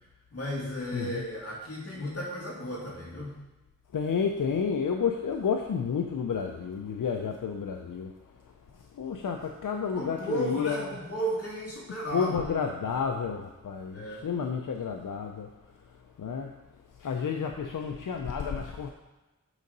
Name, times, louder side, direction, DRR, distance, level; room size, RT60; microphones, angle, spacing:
voice 1, 0.3-3.3 9.9-12.3 13.9-14.3, equal, 50° left, -5 dB, 2.5 m, -34 dB
voice 2, 0.9-1.2 3.9-8.1 8.7-10.9 12.1-15.5 15.9-16.5 17.0-18.9, left 6 dB, 85° left, 3 dB, 0.6 m, -31 dB
8.0 x 3.9 x 5.3 m, 1.1 s
wide cardioid pair, 80°, 31 cm